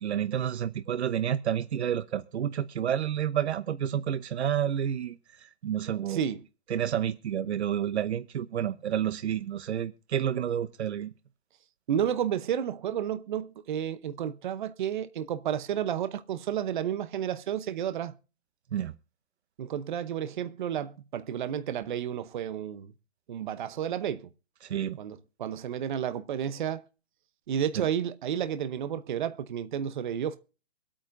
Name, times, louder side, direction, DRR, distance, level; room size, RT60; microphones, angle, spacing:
voice 1, 0.0-6.2 6.7-11.1 18.7-18.9 24.6-25.0 27.8-27.9, right 9 dB, 80° right, 0.9 m, -30 dB
voice 2, 6.1-6.4 11.9-18.1 19.6-22.9 23.3-24.3 25.0-26.8 27.5-30.4, right 9 dB, 45° right, 0.8 m, -31 dB
24.5 x 8.8 x 2.6 m
hypercardioid pair, 170°, 33 cm